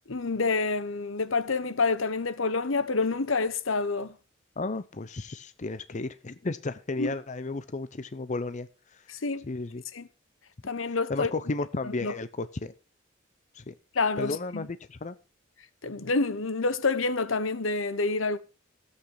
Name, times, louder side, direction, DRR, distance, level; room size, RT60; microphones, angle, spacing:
voice 1, 0.1-4.1 7.0-7.1 9.1-9.4 9.9-10.1 10.7-11.3 11.8-12.1 13.9-14.6 15.8-18.4, left 3 dB, 80° left, 1.1 m, -28 dB
voice 2, 4.6-9.0 9.4-9.8 10.9-12.7 13.5-13.7 14.2-15.2, left 3 dB, 40° left, 0.6 m, -34 dB
13.5 x 8.4 x 4.7 m
head